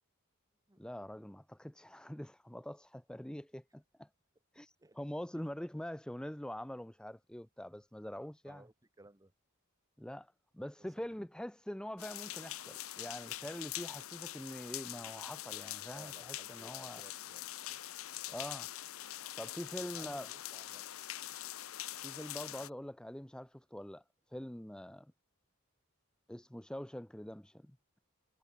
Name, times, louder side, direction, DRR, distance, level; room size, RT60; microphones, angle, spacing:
voice 1, 0.8-4.1 4.5-8.6 10.0-17.0 18.3-18.7 19.4-20.3 22.0-24.0 24.3-25.1 26.3-27.8, equal, 5° left, 0.6 m, -44 dB
voice 2, 4.5-5.0 5.3-5.5 8.5-9.3 11.0-11.1 15.9-17.8 18.3-18.5 19.9-20.9, right 2 dB, 15° right, 1.2 m, -59 dB
sound 1, 12.0-22.7, left 13 dB, 75° left, 0.9 m, -44 dB
head